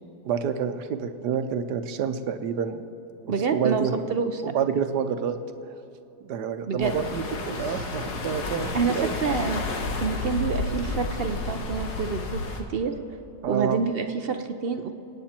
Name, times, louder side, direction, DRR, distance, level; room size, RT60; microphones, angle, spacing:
voice 1, 0.2-2.8 3.2-3.9 4.4-5.4 6.2-9.1 13.4-13.8, right 7 dB, 80° right, 9 dB, 1.4 m, -28 dB
voice 2, 3.3-4.4 6.7-6.9 8.7-12.4 12.7-12.9 13.5-14.9, right 5 dB, 55° right, 8 dB, 0.7 m, -27 dB
sound 1, 6.8-12.6, left 3 dB, 70° left, 1.9 m, -31 dB
28.0 x 9.3 x 4.4 m, 2.8 s
omnidirectional pair, 1.8 m